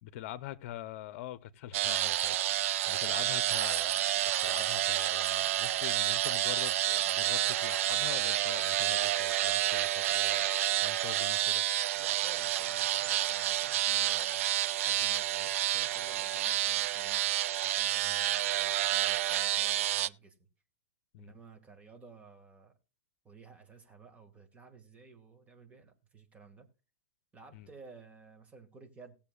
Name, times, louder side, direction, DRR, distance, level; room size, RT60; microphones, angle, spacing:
voice 1, 0.0-10.5 10.8-11.6 18.0-18.2 21.1-21.3 27.5-27.7, left 13 dB, 55° left, 0.9 m, -44 dB
sound 1, 1.7-20.1, right 13 dB, 60° right, 0.5 m, -29 dB
voice 2, 2.8-3.5 11.9-14.5 14.8-17.4 17.6-20.5 21.2-22.7 23.2-26.7 27.3-29.2, right 4 dB, 15° right, 2.2 m, -54 dB
18.0 x 7.2 x 2.5 m
hypercardioid pair, 125°, 8 cm